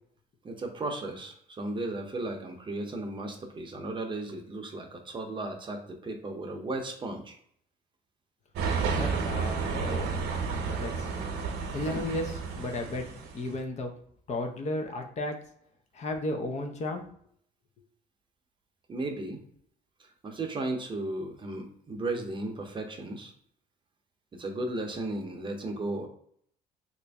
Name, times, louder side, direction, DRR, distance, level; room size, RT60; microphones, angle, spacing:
voice 1, 0.4-7.4 11.7-12.0 18.9-19.4 20.0-23.3 24.3-26.1, right 2 dB, 30° right, 3 dB, 0.7 m, -35 dB
sound 1, 8.6-13.5, right 5 dB, 80° right, 0.8 m, -31 dB
voice 2, 9.0-10.2 10.7-11.1 11.7-13.0 13.3-13.9 14.3-15.4 15.9-17.1, left 2 dB, 40° left, 4 dB, 0.6 m, -34 dB
3.0 x 2.6 x 3.4 m, 0.65 s
cardioid pair, 110°, 17 cm